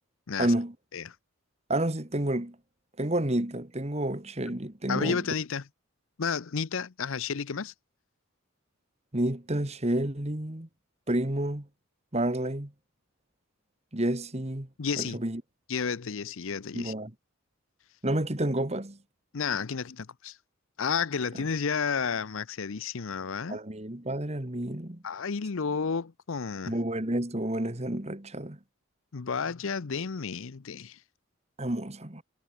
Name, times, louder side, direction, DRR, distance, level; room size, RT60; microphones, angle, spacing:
voice 1, 0.4-0.7 1.7-2.6 3.0-5.2 9.1-10.7 11.1-11.7 12.1-12.7 13.9-14.7 15.0-15.4 16.7-17.1 18.0-19.0 23.5-25.0 26.7-28.6 31.6-32.2, right 1 dB, 30° right, 1.7 m, -30 dB
voice 2, 4.9-5.6 6.2-7.7 14.8-15.2 15.7-16.9 19.3-20.4 20.8-23.6 25.0-26.8 29.1-31.0, left 6 dB, 65° left, 0.6 m, -31 dB
head